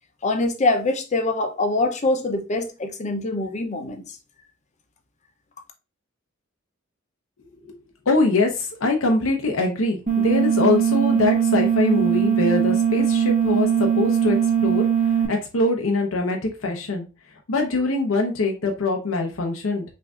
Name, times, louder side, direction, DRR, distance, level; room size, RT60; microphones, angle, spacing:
voice 1, 0.2-4.1, left 2 dB, 35° left, 0.7 m, -24 dB
voice 2, 8.1-14.9 15.3-17.1 17.5-19.8, left 2 dB, 80° left, 0.8 m, -23 dB
sound 1, 10.1-15.3, right 8 dB, 35° right, 1.0 m, -20 dB
5.6 x 2.6 x 2.4 m
head